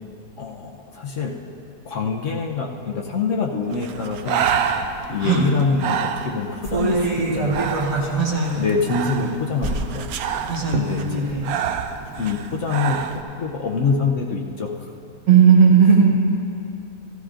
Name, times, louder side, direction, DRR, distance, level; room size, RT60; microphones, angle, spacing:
voice 1, 0.4-1.4 1.8-4.5 5.1-7.8 8.6-10.1 10.4-11.5 12.2-13.1 13.4-14.9, left 4 dB, 60° left, 1 dB, 0.9 m, -25 dB
Breathing, 3.7-13.2, right 8 dB, 70° right, 0.9 m, -28 dB
sound 1, 6.6-8.3 8.7-8.8 9.6-10.0 10.3-10.4 10.9-11.5 11.9-12.0, right 2 dB, 55° right, 1.6 m, -24 dB
voice 2, 8.1-8.6 10.5-11.6 15.3-16.1, right 6 dB, 90° right, -2 dB, 2.3 m, -16 dB
15.0 x 14.5 x 2.5 m, 2.7 s
omnidirectional pair, 1.8 m